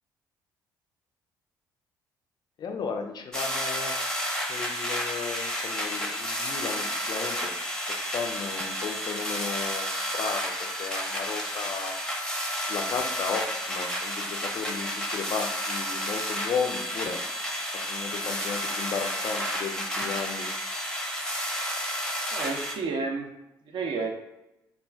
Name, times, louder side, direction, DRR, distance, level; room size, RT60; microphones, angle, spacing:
voice 1, 2.6-4.0 4.5-7.5 7.9-12.0 12.6-17.2 17.9-20.5, left 5 dB, 45° left, 4 dB, 0.4 m, -34 dB
sound 1, 3.3-22.7, equal, 5° left, 0.7 m, -31 dB
voice 2, 22.3-23.3 23.7-24.1, right 4 dB, 50° right, 1 dB, 0.6 m, -30 dB
2.4 x 2.2 x 3.2 m, 0.93 s
figure-of-eight pair, 45°, 10 cm